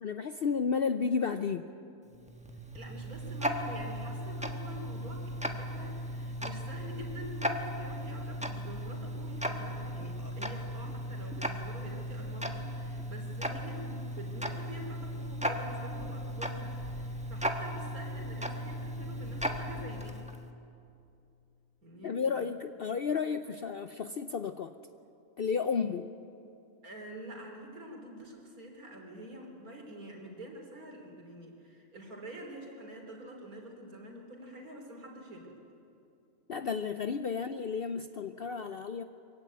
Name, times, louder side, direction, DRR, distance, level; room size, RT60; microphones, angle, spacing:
voice 1, 0.0-1.7 22.0-24.7 25.4-26.1 36.5-39.0, left 6 dB, 60° left, 9 dB, 0.6 m, -32 dB
Tick-tock, 2.1-20.4, equal, 5° right, 1.1 m, -37 dB
voice 2, 2.7-20.2 21.8-22.5 26.8-35.6, right 1 dB, 75° right, 2 dB, 3.7 m, -46 dB
23.5 x 16.0 x 9.3 m, 2.6 s
omnidirectional pair, 1.6 m